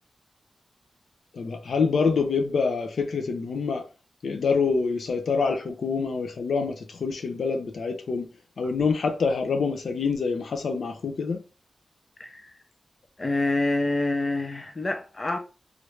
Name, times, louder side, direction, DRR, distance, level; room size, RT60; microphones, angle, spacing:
voice 1, 1.3-3.9 4.2-8.3 8.6-11.4, left 5 dB, 80° left, 0.4 m, -26 dB
voice 2, 12.2-12.6 13.2-15.4, left 2 dB, 30° left, 0.5 m, -27 dB
3.1 x 2.5 x 3.0 m
wide cardioid pair, 105°, 0 cm